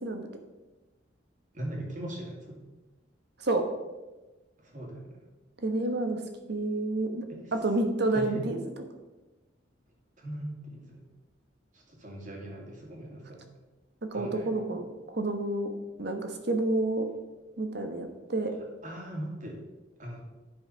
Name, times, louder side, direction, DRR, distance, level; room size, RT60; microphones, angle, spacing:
voice 1, 1.5-2.6 4.6-5.2 7.3-7.5 8.1-8.5 10.2-11.1 11.7-13.4 14.1-14.7 18.8-19.6 20.0-20.2, right 1 dB, 45° right, 0 dB, 2.3 m, -39 dB
voice 2, 5.6-6.2 6.5-7.2 7.5-8.6 14.1-15.7 16.0-17.1 17.6-18.6, right 2 dB, 60° right, 6 dB, 1.2 m, -29 dB
10.5 x 5.7 x 5.6 m, 1.1 s
head